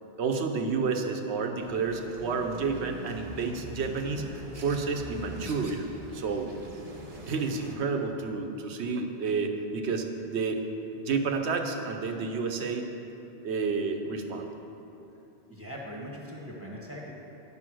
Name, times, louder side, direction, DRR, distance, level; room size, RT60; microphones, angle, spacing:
voice 1, 0.2-5.8 6.1-6.5 7.3-10.6 11.0-12.9 13.4-14.5, right 4 dB, 75° right, 5 dB, 1.0 m, -30 dB
sound 1, 1.6-7.8, equal, 35° right, 0.9 m, -42 dB
voice 2, 15.5-17.1, equal, 10° right, -4 dB, 1.2 m, -40 dB
9.8 x 5.3 x 6.2 m, 2.9 s
omnidirectional pair, 1.1 m